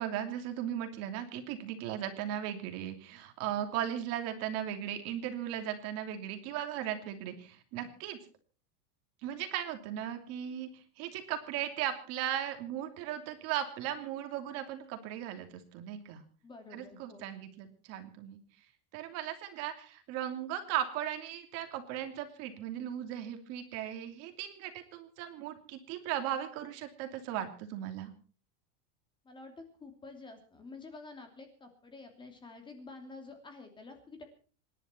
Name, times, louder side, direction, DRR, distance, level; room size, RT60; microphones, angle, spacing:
voice 1, 0.0-8.2 9.2-16.2 16.7-18.4 18.9-28.1, right 10 dB, 45° right, 6 dB, 2.9 m, -37 dB
voice 2, 16.4-17.2 29.2-34.2, left 3 dB, 15° left, 5 dB, 2.8 m, -49 dB
26.5 x 11.0 x 4.5 m, 0.40 s
supercardioid pair, 165°, 34 cm